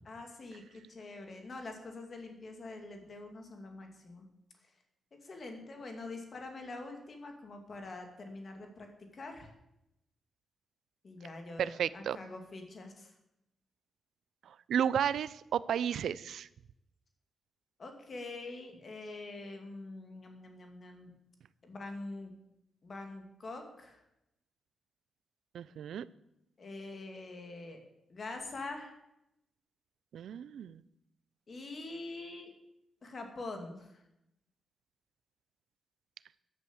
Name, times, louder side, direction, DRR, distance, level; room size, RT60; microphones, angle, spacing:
voice 1, 0.1-4.2 5.2-8.9 9.1-9.5 11.0-13.1 17.8-21.1 21.6-22.3 22.8-24.0 26.6-27.8 28.1-28.9 31.5-32.5 33.0-34.0, left 2 dB, 35° left, 4 dB, 2.5 m, -45 dB
voice 2, 11.6-12.2 14.5-16.5 25.5-26.1 30.1-30.8, right 9 dB, 70° right, 18 dB, 0.6 m, -33 dB
14.5 x 11.0 x 7.3 m, 0.84 s
wide cardioid pair, 175°, 0 cm